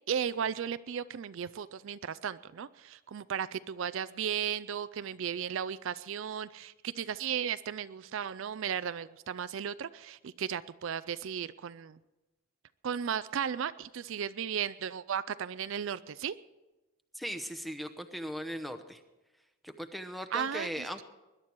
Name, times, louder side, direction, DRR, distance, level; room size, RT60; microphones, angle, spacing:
voice 1, 0.1-12.0 12.8-16.4 20.3-20.8, right 8 dB, 60° right, 14 dB, 0.4 m, -35 dB
voice 2, 17.1-19.0 19.6-21.0, equal, ahead, 7 dB, 0.8 m, -38 dB
21.0 x 11.0 x 4.6 m, 1.1 s
head